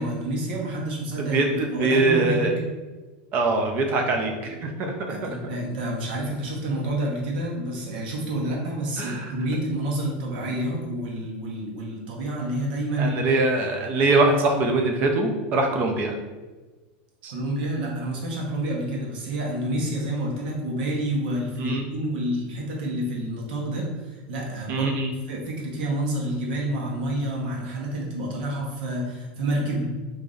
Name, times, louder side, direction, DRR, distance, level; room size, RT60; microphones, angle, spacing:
voice 1, 0.0-2.5 5.1-13.2 17.3-23.9 24.3-24.9 25.3-29.9, right 1 dB, 75° right, -1 dB, 1.0 m, -28 dB
voice 2, 1.2-2.5 3.3-5.1 9.0-9.3 13.0-16.1 17.2-17.3 21.6-21.9 24.7-25.1, right 2 dB, 35° right, 3 dB, 0.5 m, -23 dB
3.0 x 2.6 x 3.8 m, 1.2 s
supercardioid pair, 165°, 5 cm